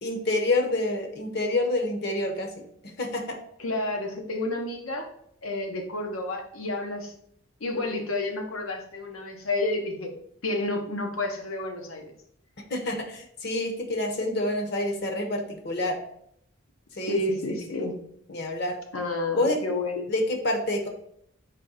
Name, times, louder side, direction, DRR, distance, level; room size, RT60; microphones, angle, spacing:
voice 1, 0.0-3.4 12.7-16.0 17.0-17.9 18.3-18.8 19.3-19.6 20.1-20.9, left 2 dB, 50° left, 4 dB, 0.8 m, -28 dB
voice 2, 3.6-5.1 5.4-7.1 7.6-10.2 10.4-12.0 17.1-18.0 18.9-20.1, left 2 dB, 85° left, 3 dB, 0.8 m, -30 dB
4.2 x 3.1 x 3.9 m, 0.70 s
head